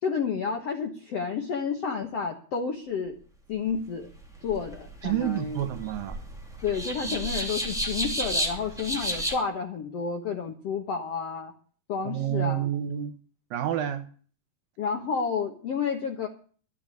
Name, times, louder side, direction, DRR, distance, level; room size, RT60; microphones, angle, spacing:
voice 1, 0.0-3.2 3.5-4.1 4.4-5.6 6.6-11.5 11.9-12.7 14.8-16.3, left 6 dB, 65° left, 1.5 m, -30 dB
sound 1, 4.0-9.3, right 1 dB, ahead, 2.0 m, -32 dB
voice 2, 5.0-6.2 7.0-7.2 12.0-13.2 13.5-14.1, right 11 dB, 70° right, 2.4 m, -29 dB
13.0 x 7.0 x 8.8 m
omnidirectional pair, 4.6 m